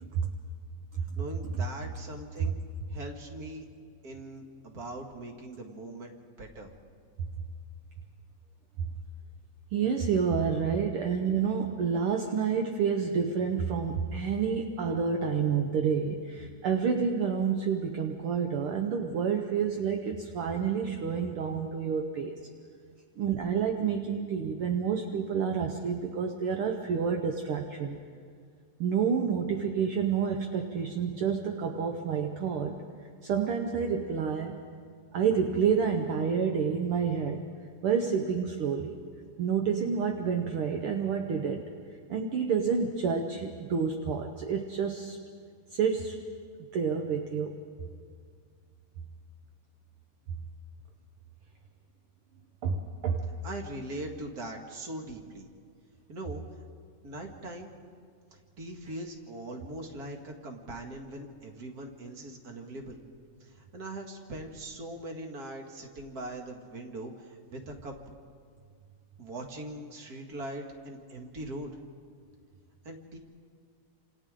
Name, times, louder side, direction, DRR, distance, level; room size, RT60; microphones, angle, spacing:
voice 1, 1.2-2.5 2.9-3.7 4.0-6.1 6.4-6.7 53.4-55.5 56.1-56.4 57.0-57.7 58.6-63.0 63.4-68.0 69.2-71.7 72.8-73.2, right 1 dB, 35° right, 2 dB, 2.0 m, -41 dB
voice 2, 9.7-22.4 23.2-28.0 28.8-32.7 33.2-34.6 35.1-37.4 37.8-38.9 39.4-41.7 42.1-45.2 45.7-46.2 46.7-47.5 52.6-53.3, right 6 dB, 65° right, 3 dB, 1.4 m, -29 dB
29.0 x 27.5 x 3.8 m, 2.1 s
omnidirectional pair, 3.5 m